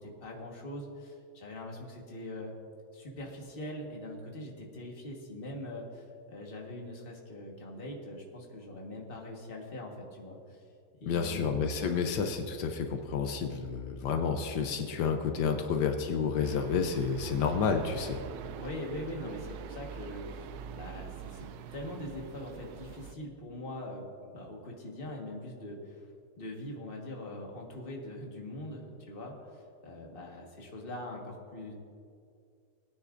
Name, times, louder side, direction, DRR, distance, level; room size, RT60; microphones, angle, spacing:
voice 1, 0.0-2.5 2.9-10.6 11.0-11.9 18.6-26.0 26.4-31.7, left 1 dB, 35° left, -1 dB, 1.6 m, -42 dB
voice 2, 11.0-18.2, left 6 dB, 80° left, 5 dB, 1.3 m, -30 dB
sound 1, 16.4-23.1, right 8 dB, 75° right, 1.0 m, -44 dB
19.5 x 9.7 x 2.6 m, 2.4 s
omnidirectional pair, 1.8 m